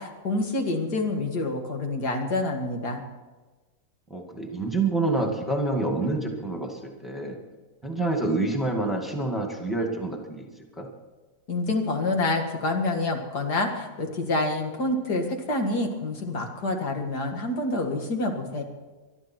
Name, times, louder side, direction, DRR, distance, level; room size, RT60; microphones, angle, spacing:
voice 1, 0.0-3.0 11.5-18.6, left 2 dB, 85° left, 3 dB, 2.6 m, -27 dB
voice 2, 4.1-7.4 7.8-10.5 10.8-10.9, right 2 dB, ahead, 1 dB, 2.0 m, -27 dB
21.0 x 12.5 x 4.6 m, 1.2 s
omnidirectional pair, 1.7 m